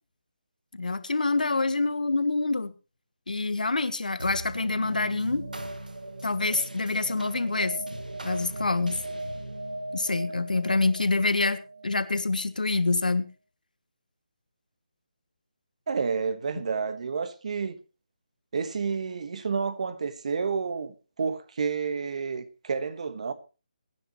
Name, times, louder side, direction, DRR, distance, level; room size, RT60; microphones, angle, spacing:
voice 1, 0.7-2.7 3.3-5.5 6.2-7.8 8.2-9.0 9.9-11.6 11.8-13.3, left 3 dB, 80° left, 1.4 m, -26 dB
sound 1, 4.2-12.9, right 1 dB, 90° right, 1.8 m, -38 dB
voice 2, 15.9-17.8 18.5-23.3, right 5 dB, 55° right, 1.4 m, -30 dB
22.5 x 10.0 x 3.1 m
figure-of-eight pair, 155°, 4 cm